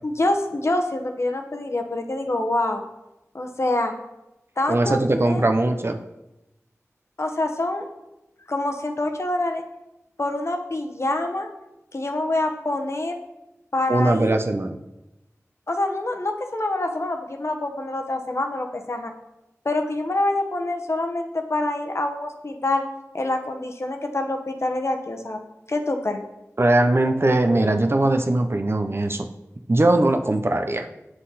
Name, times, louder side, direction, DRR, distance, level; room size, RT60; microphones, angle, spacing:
voice 1, 0.0-2.8 3.3-3.9 4.6-5.4 7.2-7.9 8.5-9.6 10.2-11.5 11.9-13.2 13.7-14.4 15.7-19.1 19.6-22.8 23.1-25.4 25.7-26.2, left 2 dB, 55° left, 5 dB, 1.0 m, -26 dB
voice 2, 4.7-6.0 13.9-14.8 26.6-29.3 29.7-30.9, right 2 dB, 45° right, 6 dB, 0.7 m, -20 dB
7.6 x 6.2 x 4.1 m, 0.93 s
wide cardioid pair, 45°, 6 cm